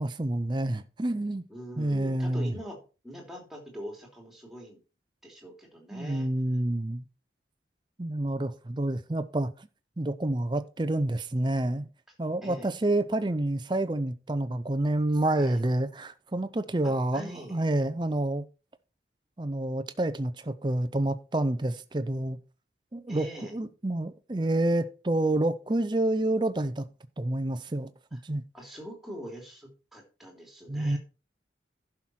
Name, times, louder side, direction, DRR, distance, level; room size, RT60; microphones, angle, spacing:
voice 1, 0.0-1.4 1.8-2.6 5.9-7.0 8.0-9.7 10.0-11.9 12.2-18.4 19.4-22.4 22.9-26.9 27.2-28.4 30.7-31.0, right 1 dB, 25° right, 0.6 m, -28 dB
voice 2, 1.5-2.8 3.0-4.8 5.2-6.3 12.4-12.7 15.4-15.6 16.8-17.6 23.1-23.6 28.1-28.2 28.5-31.0, equal, ahead, 2.9 m, -43 dB
11.5 x 5.9 x 4.4 m
head